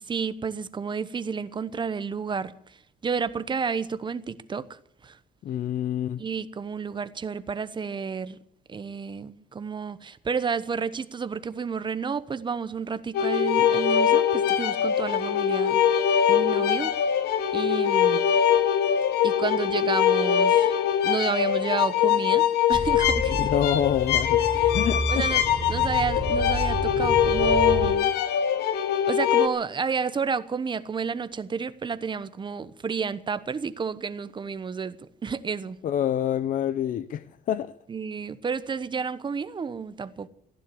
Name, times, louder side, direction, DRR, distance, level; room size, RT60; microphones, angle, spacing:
voice 1, 0.0-2.5 3.0-5.2 6.2-8.4 8.7-15.8 16.3-16.9 17.5-18.2 19.2-20.7 21.0-23.5 24.6-24.7 25.1-25.4 25.7-28.1 29.1-35.8 37.9-40.3, right 5 dB, 30° right, 1.0 m, -31 dB
voice 2, 5.4-6.2 23.3-24.5 24.7-25.4 35.8-37.7, left 10 dB, 50° left, 0.7 m, -27 dB
sound 1, 13.1-29.5, left 9 dB, 75° left, 1.4 m, -22 dB
sound 2, 22.7-27.9, equal, 5° left, 4.2 m, -31 dB
15.5 x 11.0 x 8.5 m
cardioid pair, 110°, 17 cm